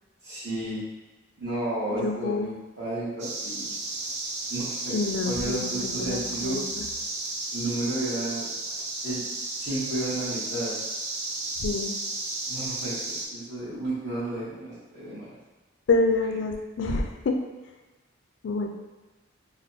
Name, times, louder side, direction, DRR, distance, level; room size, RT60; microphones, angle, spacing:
voice 1, 0.2-0.8 1.4-3.7 4.5-4.9 5.2-6.6 7.5-8.4 9.0-9.2 9.6-10.7 12.5-15.3, right 1 dB, 55° right, -13 dB, 1.1 m, -32 dB
voice 2, 2.0-2.5 4.9-6.8 11.6-12.0 15.9-17.4 18.4-18.7, left 3 dB, 65° left, 4 dB, 0.3 m, -27 dB
sound 1, 3.2-13.3, right 2 dB, 35° right, 0.3 m, -33 dB
3.4 x 2.3 x 2.6 m, 1.2 s
head